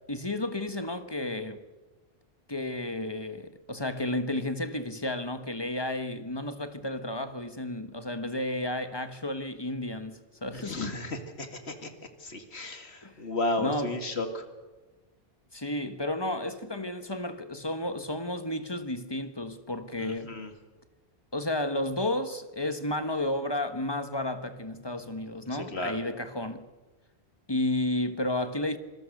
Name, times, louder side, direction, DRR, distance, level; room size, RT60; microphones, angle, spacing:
voice 1, 0.1-1.6 2.5-11.0 13.0-13.1 13.6-14.0 15.5-20.3 21.3-26.7 27.5-28.8, left 1 dB, 25° left, 1.3 m, -32 dB
voice 2, 10.6-11.9 12.2-14.4 20.0-20.5 25.7-26.0, left 2 dB, 85° left, 2.5 m, -33 dB
26.0 x 22.0 x 6.6 m
omnidirectional pair, 1.1 m